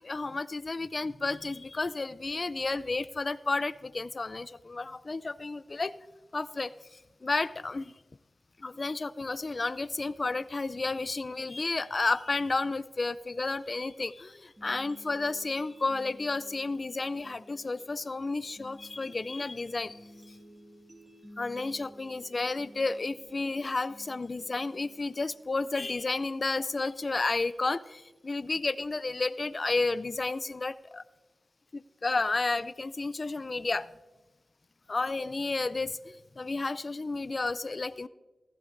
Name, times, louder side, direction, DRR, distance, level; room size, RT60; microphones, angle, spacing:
voice 1, 0.0-5.9 6.3-7.9 8.6-20.0 21.4-31.0 31.7-33.9 34.9-38.1, left 3 dB, 45° left, 16 dB, 0.4 m, -32 dB
sound 1, 14.6-26.6, equal, 35° right, 2.1 m, -54 dB
15.5 x 14.5 x 2.6 m, 1.1 s
wide cardioid pair, 65°, 0 cm